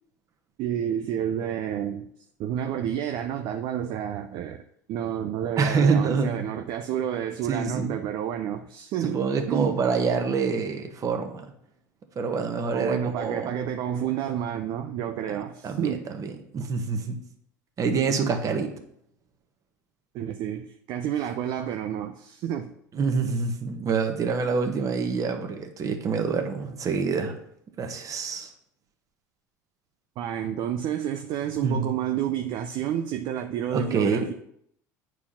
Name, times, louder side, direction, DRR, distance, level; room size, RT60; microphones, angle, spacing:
voice 1, 0.6-2.1 2.4-4.6 4.9-9.8 12.7-16.1 20.1-22.7 30.2-34.3, right 10 dB, 55° right, 0.6 m, -30 dB
voice 2, 5.6-6.5 7.5-8.0 9.0-11.4 12.1-13.6 15.6-17.2 17.8-18.7 22.9-27.4 27.8-28.5 31.6-31.9 33.7-34.3, right 5 dB, 35° right, 1.5 m, -26 dB
8.6 x 4.7 x 5.6 m
hypercardioid pair, 75°, 9 cm